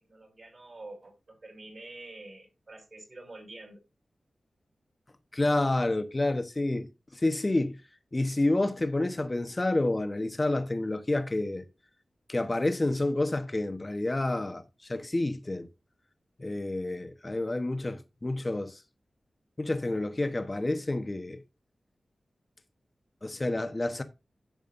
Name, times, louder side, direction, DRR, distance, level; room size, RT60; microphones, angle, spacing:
voice 1, 0.1-3.8, right 2 dB, 50° right, 5.9 m, -47 dB
voice 2, 5.3-7.8 8.1-11.6 12.3-15.7 16.4-18.8 19.6-21.4 23.2-24.0, left 2 dB, 25° left, 1.0 m, -29 dB
11.0 x 7.2 x 2.6 m
wide cardioid pair, 95°, 0 cm